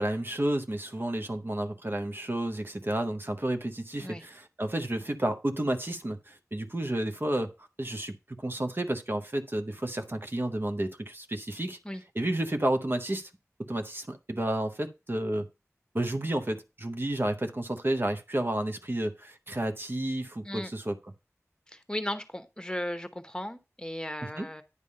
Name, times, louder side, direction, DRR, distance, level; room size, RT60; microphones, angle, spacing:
voice 1, 0.0-7.5 7.8-11.8 12.1-13.3 13.7-15.5 15.9-21.0 24.2-24.5, right 1 dB, 45° right, 0.8 m, -31 dB
voice 2, 21.7-24.6, left 1 dB, 15° left, 1.0 m, -36 dB
9.7 x 3.5 x 5.5 m
wide cardioid pair, 40°, 5 cm